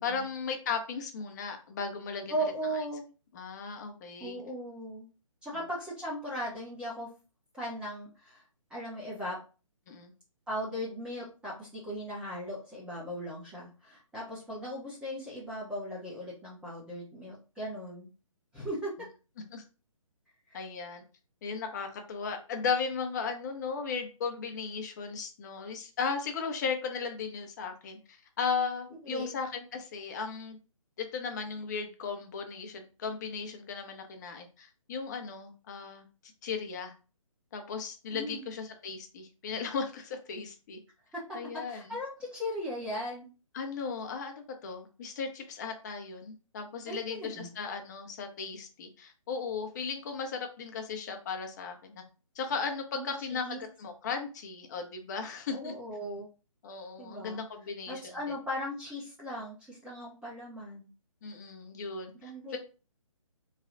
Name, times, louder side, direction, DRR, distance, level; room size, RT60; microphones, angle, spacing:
voice 1, 0.0-2.3 3.3-4.4 9.9-10.1 19.5-19.6 20.5-21.0 21.4-30.6 31.0-36.1 36.4-36.9 37.5-40.8 41.3-41.9 43.5-44.3 44.6-52.0 52.3-55.7 56.6-58.0 61.2-62.6, left 5 dB, 30° left, 5 dB, 0.8 m, -36 dB
voice 2, 2.3-3.0 4.2-5.1 5.4-7.1 7.5-8.4 8.7-9.4 10.5-18.1 18.5-18.9 20.5-20.6 29.0-29.3 38.1-38.4 41.7-43.3 46.9-47.5 52.9-53.6 55.5-56.3 57.0-57.4 57.9-60.9 62.2-62.6, equal, 5° right, -7 dB, 0.8 m, -38 dB
3.2 x 2.3 x 3.8 m, 0.34 s
figure-of-eight pair, 150°, 18 cm